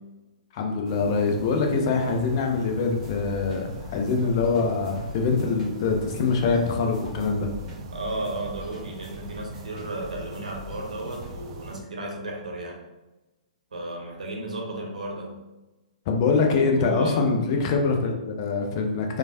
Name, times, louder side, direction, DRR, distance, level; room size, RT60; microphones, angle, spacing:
voice 1, 0.5-7.5 16.1-19.2, left 4 dB, 40° left, 2 dB, 0.5 m, -24 dB
sound 1, 0.9-11.8, right 4 dB, 40° right, 0.4 m, -42 dB
sound 2, 3.0-11.3, left 2 dB, 15° right, 1.0 m, -43 dB
voice 2, 7.9-12.8 13.7-15.3 16.8-17.2, right 1 dB, 75° right, 0 dB, 0.7 m, -34 dB
3.1 x 2.3 x 2.6 m, 1.1 s
figure-of-eight pair, 120°, 4 cm